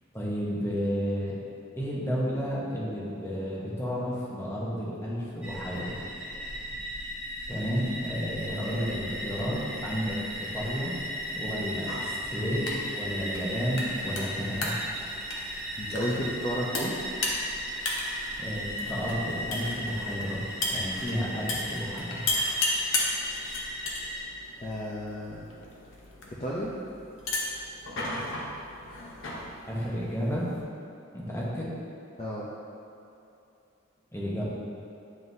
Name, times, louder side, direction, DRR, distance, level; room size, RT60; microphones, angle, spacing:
voice 1, 0.1-1.4 1.8-6.0 7.5-11.0 11.3-14.7 18.4-20.4 20.7-22.2 29.7-30.5 31.1-31.7 34.1-34.4, equal, 15° left, -6 dB, 1.0 m, -32 dB
sound 1, 5.4-24.2, equal, 10° right, 1.2 m, -37 dB
sound 2, 11.8-30.6, left 2 dB, 70° left, 0.9 m, -35 dB
voice 2, 15.8-17.0 24.6-25.5 26.4-26.7 32.2-32.5, equal, 30° left, -7 dB, 0.5 m, -32 dB
9.3 x 3.8 x 2.7 m, 2.7 s
head